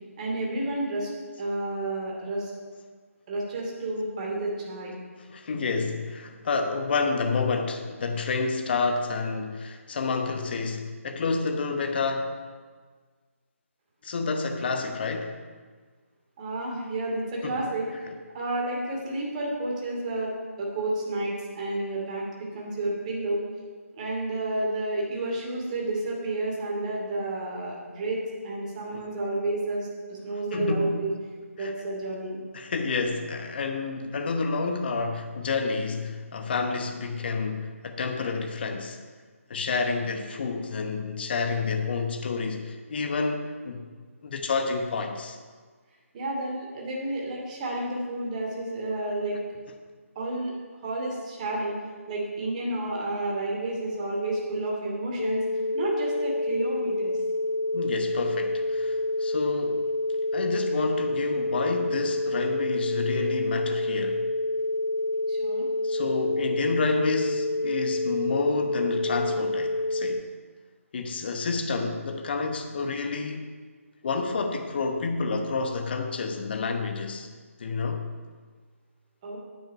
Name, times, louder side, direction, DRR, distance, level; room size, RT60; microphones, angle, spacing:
voice 1, 0.2-1.1 1.4-2.5 3.3-4.9 16.4-17.9 18.3-20.3 20.6-23.4 24.0-31.1 31.6-32.4 46.1-49.4 50.1-50.5 50.8-51.8 52.1-55.4 55.7-57.1 65.3-65.7 79.2-79.4, right 2 dB, 30° right, -2 dB, 2.5 m, -30 dB
voice 2, 5.2-12.4 14.0-15.4 17.4-17.7 28.9-29.0 30.5-31.1 31.6-31.7 32.5-39.0 39.5-43.8 44.2-45.4 57.7-59.9 60.3-64.2 65.8-70.2 70.9-73.5 74.0-77.3 77.6-78.0, left 4 dB, 45° left, 5 dB, 1.0 m, -29 dB
sound 1, 55.2-70.2, left 2 dB, 65° left, 0.5 m, -28 dB
9.4 x 8.7 x 5.4 m, 1.5 s
figure-of-eight pair, 150°, 8 cm